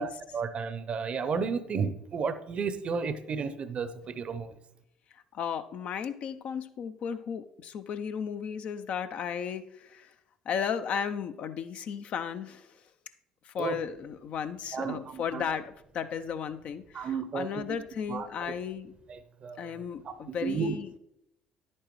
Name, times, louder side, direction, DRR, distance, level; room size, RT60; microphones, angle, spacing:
voice 1, 0.0-4.6 13.6-13.8 14.7-15.5 16.9-17.8 18.1-18.5 19.1-19.7 20.1-20.8, right 5 dB, 45° right, 13 dB, 0.7 m, -33 dB
voice 2, 5.1-10.1 10.5-12.8 13.4-18.9 19.6-20.9, left 7 dB, 55° left, 10 dB, 0.5 m, -35 dB
10.0 x 8.6 x 3.1 m, 0.81 s
hypercardioid pair, 60°, 3 cm